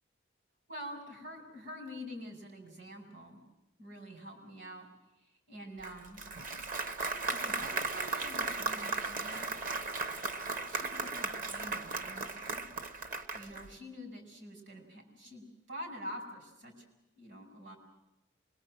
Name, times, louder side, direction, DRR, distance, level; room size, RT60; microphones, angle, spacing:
voice 1, 0.7-3.4 3.8-4.9 5.5-6.2 7.0-9.5 10.7-12.6 13.3-16.8 17.2-17.8, equal, 70° right, 4 dB, 5.9 m, -46 dB
Applause, 5.8-13.7, right 3 dB, 45° right, 1.0 m, -36 dB
25.0 x 22.0 x 7.7 m, 0.90 s
head